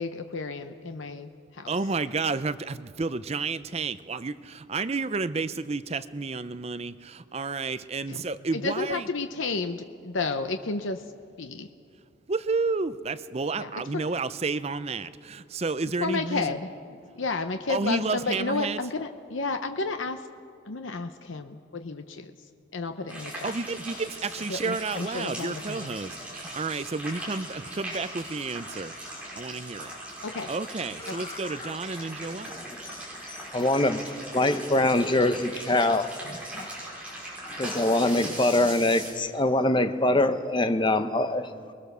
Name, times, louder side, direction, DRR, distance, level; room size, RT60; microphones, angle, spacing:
voice 1, 0.0-1.7 8.1-8.2 8.5-11.1 11.4-11.7 13.6-14.0 16.0-20.3 20.7-22.3 22.7-23.6 24.5-26.0 30.2-30.5 31.1-31.2, left 3 dB, 75° left, 7 dB, 0.8 m, -32 dB
voice 2, 1.7-9.1 12.3-16.5 17.7-18.8 23.4-28.9 29.4-30.1 30.5-32.5, right 4 dB, 30° right, 13 dB, 0.5 m, -31 dB
sound 1, 23.1-39.1, right 1 dB, 5° right, 5.8 m, -40 dB
voice 3, 31.0-31.7 32.4-34.0 34.3-36.7 37.5-41.5, left 1 dB, 25° left, 9 dB, 0.8 m, -25 dB
24.5 x 21.0 x 6.8 m, 2.5 s
head